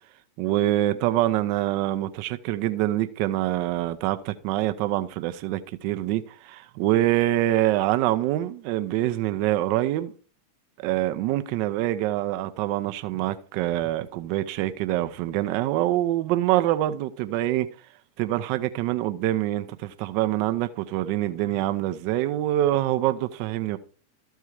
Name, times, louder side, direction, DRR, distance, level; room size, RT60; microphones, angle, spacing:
voice 1, 0.4-10.1 10.8-17.7 18.2-23.8, right 14 dB, 45° right, 0.7 m, -25 dB
13.5 x 4.6 x 4.7 m
figure-of-eight pair, 90°, 0 cm